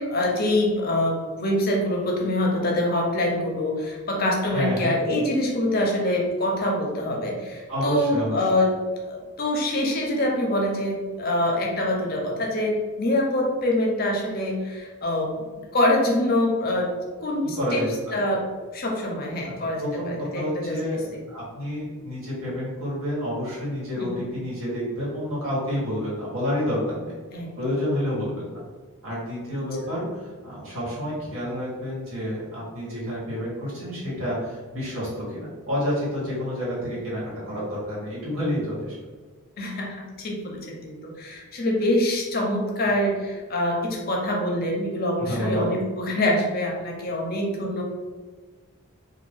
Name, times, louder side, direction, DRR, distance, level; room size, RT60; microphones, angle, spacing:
voice 1, 0.0-8.8 9.1-15.3 15.7-16.9 17.2-17.8 18.1-18.4 18.7-20.8 24.0-24.2 27.3-27.5 39.6-47.8, left 1 dB, 45° left, -1 dB, 0.5 m, -25 dB
voice 2, 4.5-5.0 7.7-8.5 17.6-18.2 19.4-19.5 19.8-21.0 21.3-27.2 27.6-28.5 29.0-38.9 45.2-45.6, equal, 70° right, -7 dB, 1.4 m, -29 dB
2.6 x 2.2 x 3.4 m, 1.4 s
head